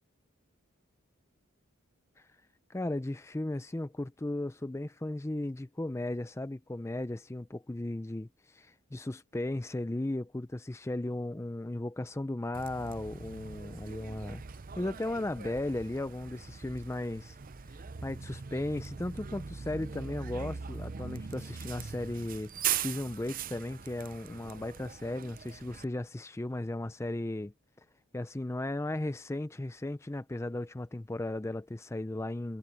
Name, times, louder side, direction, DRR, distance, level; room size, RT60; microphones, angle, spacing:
voice 1, 2.7-14.4 14.8-17.4 17.7-22.5 22.8-27.5 28.1-32.6, left 1 dB, 15° left, 0.4 m, -36 dB
Bus, 12.5-25.8, right 7 dB, 40° right, 0.6 m, -40 dB
head